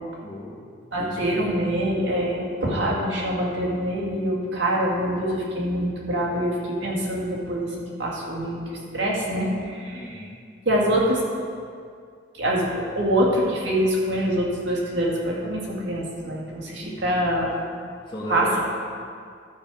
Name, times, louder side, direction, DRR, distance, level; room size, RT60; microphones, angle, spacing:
voice 1, 0.2-0.6 1.0-1.3 9.9-10.3 16.8-17.3 18.1-18.6, left 1 dB, 25° left, -8 dB, 1.5 m, -35 dB
voice 2, 0.9-10.2 10.7-11.2 12.3-17.6 18.3-18.6, right 1 dB, 65° right, -4 dB, 2.2 m, -25 dB
12.5 x 4.9 x 6.3 m, 2.2 s
head